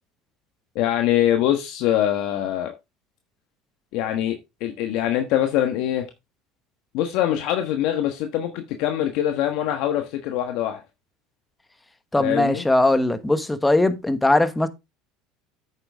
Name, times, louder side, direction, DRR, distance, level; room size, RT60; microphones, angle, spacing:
voice 1, 0.7-2.7 3.9-6.1 6.9-10.8 12.2-12.6, left 11 dB, 65° left, 1.3 m, -23 dB
voice 2, 12.1-14.7, left 2 dB, 10° left, 1.1 m, -20 dB
8.9 x 6.8 x 3.5 m
supercardioid pair, 105°, 0 cm